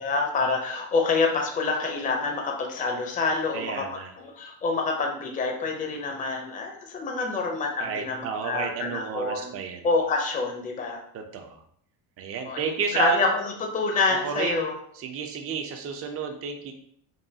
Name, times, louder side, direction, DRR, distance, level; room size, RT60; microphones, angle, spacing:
voice 1, 0.0-3.9 4.2-9.5 9.8-11.0 12.5-14.7, left 3 dB, 20° left, 2 dB, 0.6 m, -27 dB
voice 2, 3.5-4.1 7.8-9.9 11.1-11.6 12.2-13.3 14.2-14.7 14.9-16.7, right 6 dB, 35° right, 4 dB, 0.5 m, -31 dB
5.3 x 2.3 x 2.7 m, 0.66 s
cardioid pair, 125°, 43 cm